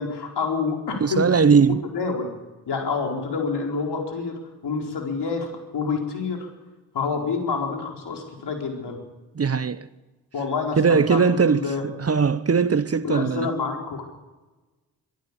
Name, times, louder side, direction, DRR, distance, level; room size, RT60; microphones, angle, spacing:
voice 1, 0.0-1.3 1.9-2.3 2.7-6.5 6.9-9.0 10.3-11.8 13.0-14.0, left 4 dB, 70° left, 4.5 m, -28 dB
voice 2, 1.0-1.8 9.3-9.9 10.8-13.5, right 5 dB, 35° right, 1.0 m, -20 dB
24.0 x 13.0 x 8.4 m
supercardioid pair, 40°, 42 cm